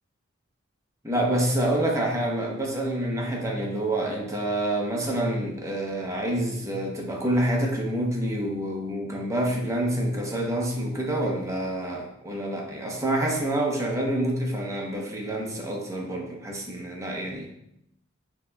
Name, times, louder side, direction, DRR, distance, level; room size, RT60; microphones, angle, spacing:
voice 1, 1.0-17.5, right 1 dB, 15° right, 0 dB, 0.7 m, -27 dB
6.2 x 2.8 x 2.2 m, 0.76 s
head